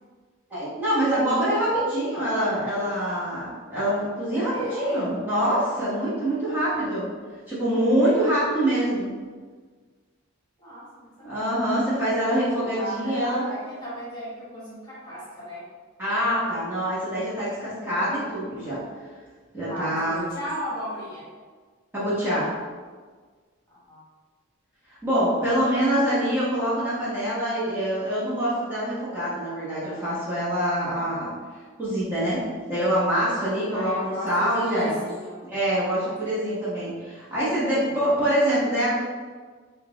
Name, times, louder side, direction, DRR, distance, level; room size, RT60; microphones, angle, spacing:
voice 1, 0.5-7.1 7.5-9.1 11.2-13.4 16.0-18.8 19.5-20.2 21.9-22.5 24.9-31.3 31.8-32.4 32.7-35.0 35.4-39.0, equal, 10° right, -11 dB, 1.0 m, -25 dB
voice 2, 4.5-5.0 10.6-11.5 12.7-15.6 19.7-21.2 23.7-24.0 33.7-35.4 37.9-38.0, equal, 20° left, -8 dB, 1.2 m, -36 dB
3.8 x 2.3 x 3.8 m, 1.5 s
head